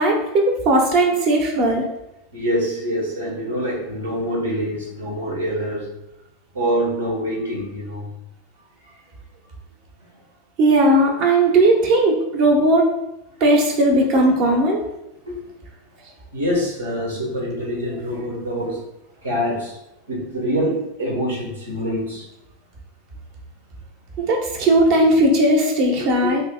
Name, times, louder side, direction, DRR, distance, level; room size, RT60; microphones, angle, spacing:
voice 1, 0.0-1.9 10.6-12.9 13.4-14.8 24.2-26.4, right 1 dB, 50° right, 2 dB, 0.9 m, -17 dB
voice 2, 2.3-5.9 6.5-8.1 15.2-15.4 16.3-18.8 19.2-19.8 20.1-22.3 26.2-26.4, equal, 80° right, -2 dB, 1.1 m, -25 dB
2.9 x 2.7 x 4.2 m, 0.89 s
figure-of-eight pair, 85°, 0 cm